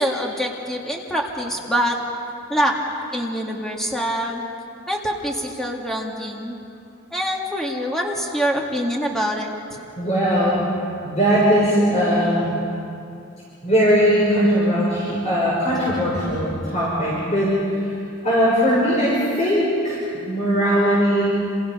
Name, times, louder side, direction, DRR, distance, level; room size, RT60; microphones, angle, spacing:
voice 1, 0.0-2.0 2.5-2.8 3.1-4.4 4.9-6.6 7.1-9.8, equal, ahead, -1 dB, 2.0 m, -25 dB
voice 2, 10.0-10.6 11.0-12.5 13.6-17.9 18.2-20.0 20.2-21.2, equal, 35° left, -7 dB, 6.3 m, -19 dB
29.5 x 28.0 x 5.6 m, 2.6 s
head